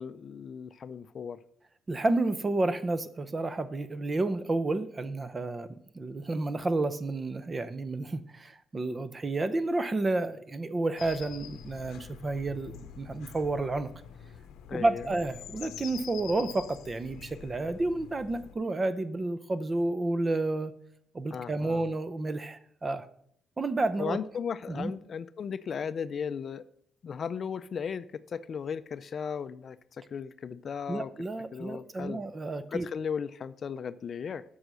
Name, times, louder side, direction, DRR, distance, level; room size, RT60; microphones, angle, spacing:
voice 1, 0.0-1.4 14.7-15.1 21.3-21.9 24.0-26.6 27.0-29.8 30.1-31.1 31.5-32.2 32.7-34.4, left 7 dB, 50° left, 0.4 m, -36 dB
voice 2, 1.9-13.9 14.7-20.7 21.1-23.1 23.6-24.2 24.7-24.9 30.9-32.9, right 2 dB, 30° right, 0.7 m, -30 dB
sound 1, 11.0-18.5, left 9 dB, 90° left, 0.7 m, -46 dB
7.9 x 5.5 x 6.3 m
cardioid pair, 90°, 0 cm